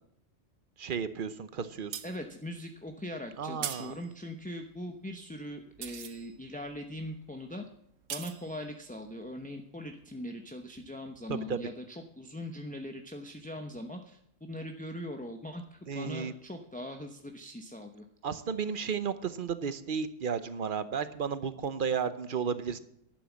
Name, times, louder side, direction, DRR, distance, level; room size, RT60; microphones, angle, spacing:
voice 1, 0.8-1.9 3.4-3.9 11.3-11.6 15.9-16.3 18.2-22.8, right 6 dB, 45° right, 12 dB, 0.9 m, -33 dB
sound 1, 1.7-10.2 10.6-10.7, right 9 dB, 90° right, 1.2 m, -44 dB
voice 2, 2.0-7.6 8.1-18.0, left 1 dB, 10° left, 4 dB, 0.7 m, -41 dB
11.5 x 9.3 x 7.2 m, 0.73 s
omnidirectional pair, 1.3 m